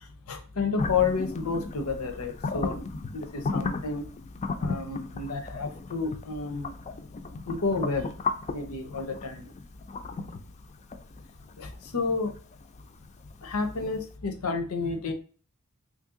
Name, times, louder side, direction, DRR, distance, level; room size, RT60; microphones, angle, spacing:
voice 1, 0.0-2.8 3.1-4.1 4.6-6.7 7.5-8.1 8.5-9.5 11.6-12.4 13.4-15.1, left 4 dB, 90° left, 6 dB, 0.7 m, -30 dB
sound 1, 0.8-13.6, left 4 dB, 30° left, 0.3 m, -35 dB
3.1 x 2.7 x 3.6 m, 0.39 s
head